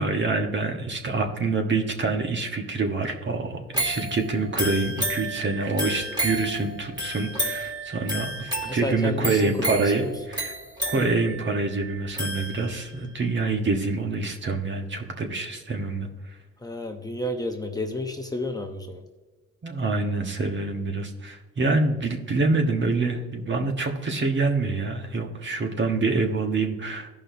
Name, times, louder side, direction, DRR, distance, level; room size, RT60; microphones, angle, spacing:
voice 1, 0.0-10.5 10.9-16.1 19.6-27.1, right 3 dB, 40° right, 4 dB, 1.3 m, -26 dB
sound 1, 3.7-13.0 13.5-13.6, right 1 dB, 15° right, 2.1 m, -32 dB
voice 2, 8.7-10.1 16.6-19.0, left 1 dB, 15° left, 3 dB, 0.8 m, -31 dB
14.5 x 5.5 x 2.7 m, 1.2 s
cardioid pair, 90°, 30 cm